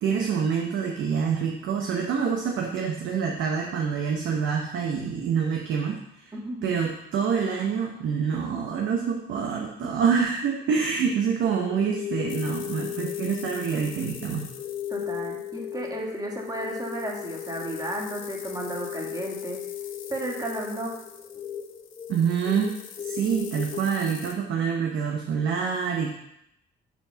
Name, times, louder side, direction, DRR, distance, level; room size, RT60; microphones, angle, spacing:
voice 1, 0.0-6.3 6.6-14.4 22.1-22.8 23.0-26.1, right 6 dB, 75° right, 1 dB, 0.9 m, -26 dB
voice 2, 6.3-6.7 9.8-10.1 14.9-19.6 20.1-20.9, right 1 dB, 20° right, -1 dB, 1.9 m, -33 dB
sound 1, 11.4-23.8, left 10 dB, 25° left, 1.0 m, -36 dB
sound 2, 12.3-24.3, left 7 dB, 80° left, 0.9 m, -45 dB
6.2 x 4.9 x 5.7 m, 0.80 s
cardioid pair, 90°, 20 cm